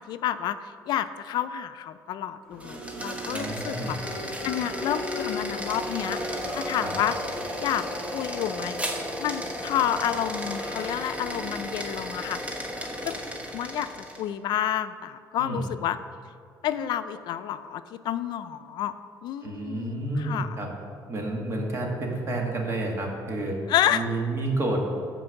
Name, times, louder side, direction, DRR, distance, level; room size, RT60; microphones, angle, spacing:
voice 1, 0.0-4.0 4.4-7.1 7.6-7.8 8.1-12.7 13.0-13.3 13.5-13.9 14.2-16.0 16.6-18.9 19.2-20.6 23.7-24.0, left 11 dB, 70° left, 11 dB, 0.4 m, -30 dB
sound 1, 2.5-3.0 3.5-9.8 10.2-11.6, left 2 dB, 5° left, 2.2 m, -39 dB
sound 2, 2.5-14.3, equal, 15° right, 1.1 m, -34 dB
voice 2, 3.3-3.9 6.8-6.9 15.4-15.7 19.4-20.7 21.1-23.6 23.9-24.9, right 2 dB, 35° right, 0 dB, 1.7 m, -30 dB
9.9 x 4.5 x 7.0 m, 2.4 s
cardioid pair, 145°, 8 cm